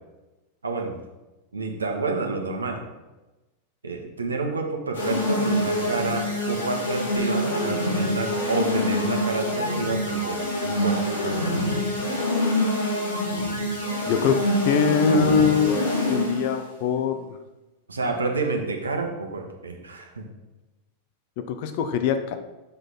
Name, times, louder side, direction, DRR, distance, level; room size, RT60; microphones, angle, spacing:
voice 1, 0.6-1.0 1.5-2.8 3.8-11.5 17.9-20.3, right 3 dB, 75° right, 2 dB, 1.2 m, -29 dB
sound 1, 4.9-16.5, left 1 dB, 70° left, 2.2 m, -25 dB
voice 2, 14.1-17.4 21.4-22.4, left 7 dB, 50° left, 9 dB, 0.7 m, -23 dB
6.8 x 6.3 x 4.0 m, 1.1 s
figure-of-eight pair, 90°, 0 cm